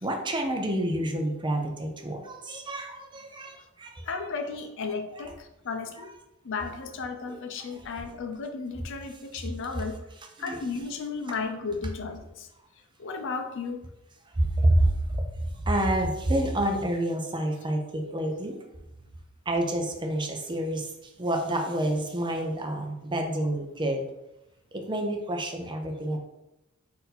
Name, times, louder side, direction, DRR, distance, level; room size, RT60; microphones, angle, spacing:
voice 1, 0.0-4.2 5.1-5.3 6.0-6.1 7.3-7.4 9.4-9.5 10.4-10.6 14.4-15.2 15.6-18.6 19.5-24.0 24.7-26.2, right 1 dB, 20° right, 3 dB, 0.5 m, -28 dB
voice 2, 4.0-6.1 6.4-10.0 10.4-12.5 13.0-13.8, left 4 dB, 60° left, 6 dB, 0.5 m, -34 dB
4.2 x 2.7 x 4.0 m, 0.92 s
head